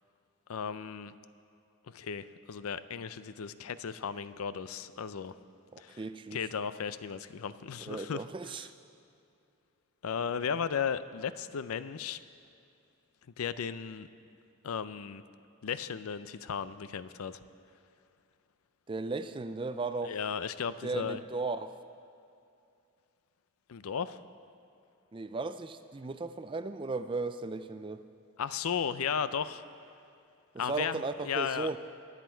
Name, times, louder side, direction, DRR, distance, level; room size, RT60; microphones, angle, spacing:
voice 1, 0.5-1.1 1.9-5.3 5.8-6.0 6.3-8.2 10.0-12.2 13.4-14.1 14.6-15.2 15.6-17.4 20.0-21.2 23.7-24.2 28.4-29.6 30.6-31.8, left 7 dB, 85° left, 14 dB, 0.5 m, -35 dB
voice 2, 5.7-6.5 7.8-8.7 18.9-20.2 20.8-21.7 25.1-28.0 30.5-31.8, right 3 dB, 25° right, 11 dB, 0.4 m, -36 dB
23.0 x 8.3 x 4.5 m, 2.6 s
head